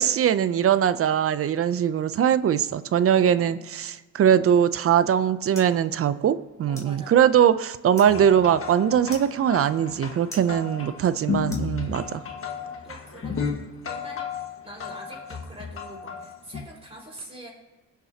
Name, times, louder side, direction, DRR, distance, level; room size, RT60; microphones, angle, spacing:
voice 1, 0.0-12.2, right 9 dB, 50° right, 14 dB, 0.6 m, -21 dB
voice 2, 3.1-3.6 6.6-7.2 11.8-12.0 12.8-13.4 13.8-14.3 14.6-17.5, right 1 dB, 20° right, -2 dB, 4.3 m, -44 dB
sound 1, 4.7-12.3, left 1 dB, 10° left, 3.1 m, -49 dB
sound 2, 8.1-16.6, left 5 dB, 45° left, 1.6 m, -33 dB
21.5 x 7.4 x 2.9 m, 1.1 s
cardioid pair, 90°, 30 cm